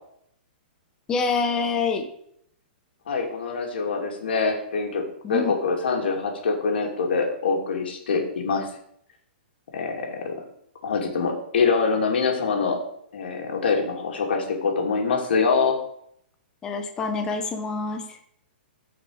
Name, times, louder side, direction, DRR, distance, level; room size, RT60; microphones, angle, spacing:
voice 1, 1.1-2.1 5.2-5.5 16.6-18.2, left 4 dB, 10° left, 5 dB, 0.8 m, -26 dB
voice 2, 3.1-5.0 5.3-8.7 9.7-10.4 10.8-12.8 13.1-15.8, left 4 dB, 70° left, 2 dB, 2.9 m, -24 dB
14.5 x 5.9 x 4.9 m, 0.70 s
hypercardioid pair, 175°, 6 cm